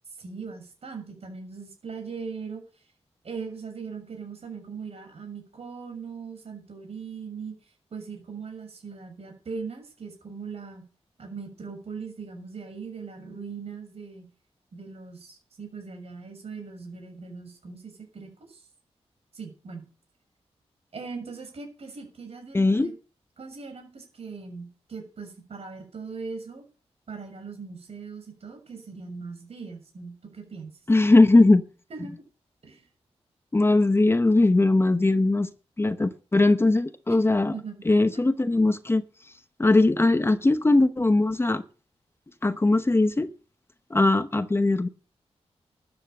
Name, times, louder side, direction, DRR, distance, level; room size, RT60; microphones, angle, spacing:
voice 1, 0.2-2.6 3.2-7.5 7.9-10.8 11.2-14.3 14.7-18.6 19.3-19.8 20.9-22.9 23.4-26.6 27.1-30.7 31.9-32.2 32.6-32.8 37.5-37.8 38.1-38.2, right 5 dB, 65° right, 6.5 m, -40 dB
voice 2, 22.5-22.9 30.9-31.6 33.5-35.5 35.8-37.6 37.8-39.0 39.6-41.6 42.4-43.3 43.9-44.9, left 2 dB, 20° left, 0.9 m, -20 dB
13.0 x 9.7 x 6.6 m
wide cardioid pair, 110°, 11 cm